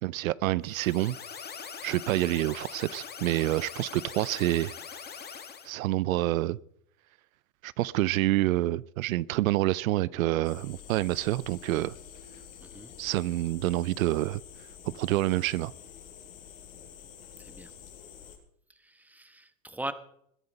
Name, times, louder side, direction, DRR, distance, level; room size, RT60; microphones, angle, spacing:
voice 1, 0.0-1.2 1.8-4.7 5.6-6.6 7.6-11.9 13.0-14.4 14.9-15.7, right 16 dB, 75° right, 21 dB, 0.6 m, -27 dB
sound 1, 0.6-5.7, left 6 dB, 25° left, 2.0 m, -42 dB
sound 2, 10.4-18.4, left 8 dB, 80° left, 5.9 m, -48 dB
voice 2, 12.6-12.9 17.4-17.7 18.8-19.9, right 2 dB, 5° right, 11 dB, 1.2 m, -40 dB
21.5 x 9.6 x 5.5 m, 0.71 s
hypercardioid pair, 100°, 41 cm